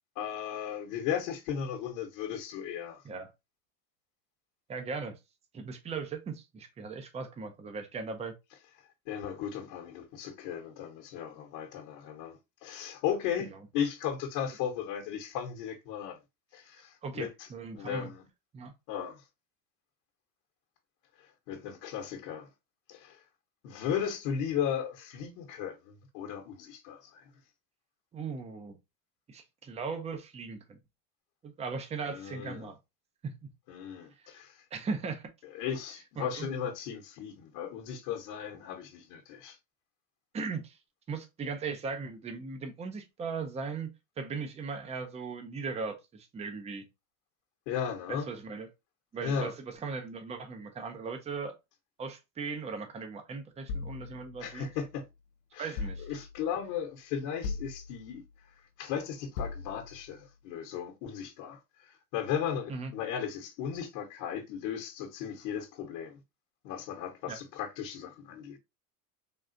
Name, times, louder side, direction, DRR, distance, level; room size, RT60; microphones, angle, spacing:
voice 1, 0.1-3.0 9.1-16.2 16.5-17.5 17.7-18.3 18.9-19.2 21.5-22.5 22.9-23.2 23.6-27.3 32.0-32.7 33.7-34.6 35.5-39.6 47.7-48.3 49.2-49.5 54.4-55.0 55.5-58.2 58.8-66.2 66.6-68.6, left 8 dB, 60° left, 1.0 m, -36 dB
voice 2, 4.7-5.1 5.5-8.3 13.4-13.6 17.0-18.1 18.5-18.7 28.1-28.8 29.3-30.8 31.4-32.8 33.2-33.3 34.7-35.2 36.2-36.5 40.3-40.8 41.1-43.9 44.2-46.8 48.1-48.7 49.1-51.6 52.0-54.7 55.6-56.1 62.7-62.9 67.3-67.4, right 4 dB, 15° right, 0.4 m, -38 dB
sound 1, 53.7-55.1 55.8-56.6 57.4-58.3 59.4-60.2, left 4 dB, 90° left, 0.6 m, -40 dB
3.6 x 2.4 x 2.5 m
supercardioid pair, 110°, 48 cm